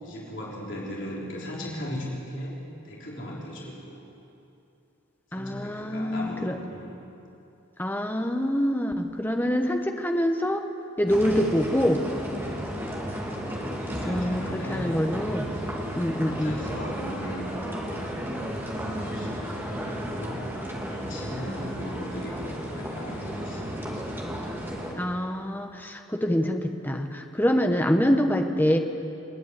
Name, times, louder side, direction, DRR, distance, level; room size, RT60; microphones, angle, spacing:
voice 1, 0.0-4.0 5.3-7.0 13.9-15.0 15.8-19.3 19.7-20.5 20.9-23.7 27.4-27.5, equal, 55° left, -5 dB, 4.0 m, -38 dB
voice 2, 5.3-6.5 7.8-10.6 11.0-12.0 14.0-15.4 15.9-16.6 24.9-28.8, equal, 10° left, 4 dB, 1.1 m, -25 dB
sound 1, 11.1-24.9, equal, 10° right, 2.4 m, -33 dB
28.5 x 9.6 x 9.6 m, 2.7 s
head